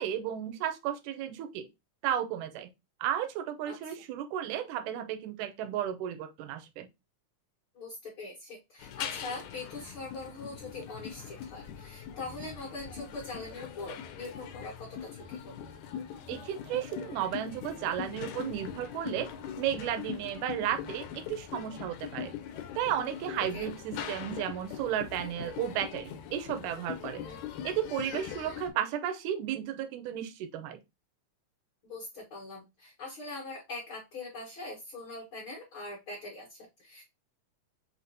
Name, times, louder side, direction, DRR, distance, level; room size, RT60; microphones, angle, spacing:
voice 1, 0.0-1.7 2.0-2.7 3.0-6.9 16.3-19.3 19.6-22.4 22.8-27.3 27.6-30.8, right 10 dB, 80° right, 2.1 m, -33 dB
voice 2, 7.7-15.6 23.5-23.7 27.2-27.4 31.8-37.0, left 2 dB, 50° left, 1.7 m, -42 dB
sound 1, 8.8-28.7, left 9 dB, 75° left, 2.0 m, -41 dB
5.9 x 2.8 x 2.6 m
omnidirectional pair, 3.6 m